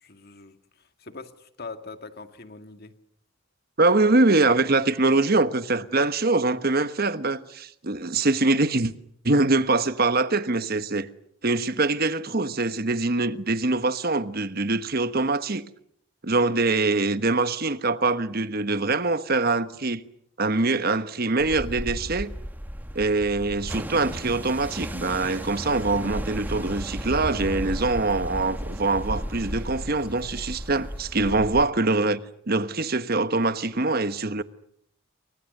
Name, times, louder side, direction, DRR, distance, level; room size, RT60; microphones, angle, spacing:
voice 1, 0.0-2.9 31.2-31.5, left 3 dB, 45° left, 2.0 m, -42 dB
voice 2, 3.8-8.9 9.2-11.1 11.4-15.6 16.2-20.0 20.4-22.3 22.9-32.2 32.5-34.4, right 3 dB, 45° right, 1.2 m, -23 dB
The Ocean Waves, 21.4-31.7, equal, 10° right, 1.4 m, -34 dB
28.5 x 24.5 x 6.7 m
head